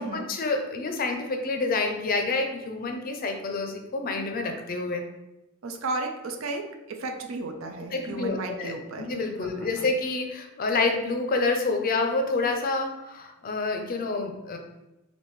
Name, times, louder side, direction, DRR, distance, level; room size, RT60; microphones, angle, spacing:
voice 1, 0.0-5.0 7.9-14.6, left 3 dB, 45° left, 4 dB, 0.4 m, -28 dB
voice 2, 5.6-9.1 9.4-9.9, right 3 dB, 80° right, 5 dB, 0.5 m, -34 dB
3.4 x 2.6 x 3.0 m, 0.98 s
head